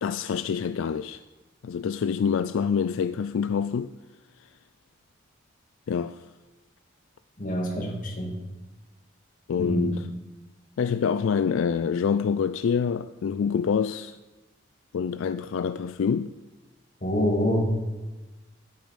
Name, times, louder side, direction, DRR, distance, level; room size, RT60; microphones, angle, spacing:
voice 1, 0.0-1.2 1.6-3.9 5.9-6.2 9.5-10.0 10.8-14.2 14.9-16.3, left 6 dB, 75° left, 0.3 m, -26 dB
voice 2, 7.4-8.3 9.6-9.9 17.0-17.6, equal, 40° left, 2.4 m, -26 dB
12.5 x 8.5 x 5.2 m
head